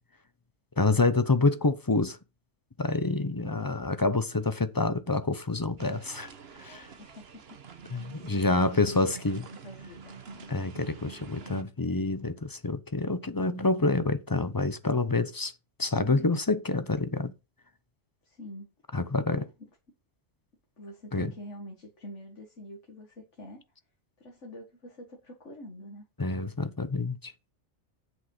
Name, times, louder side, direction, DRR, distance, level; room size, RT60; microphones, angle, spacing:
voice 1, 0.8-2.2 2.8-6.3 6.6-6.9 7.9-9.4 10.5-15.5 15.8-17.3 18.9-19.4 21.1-21.3 26.2-27.3, left 3 dB, 20° left, 0.7 m, -27 dB
sound 1, 5.8-11.6, right 5 dB, 60° right, 1.3 m, -47 dB
voice 2, 7.0-7.6 8.4-9.0 9.3-10.2 18.2-18.7 19.3-19.7 20.8-23.6 24.2-26.1, left 1 dB, 85° left, 2.3 m, -46 dB
7.9 x 6.4 x 5.6 m
omnidirectional pair, 1.2 m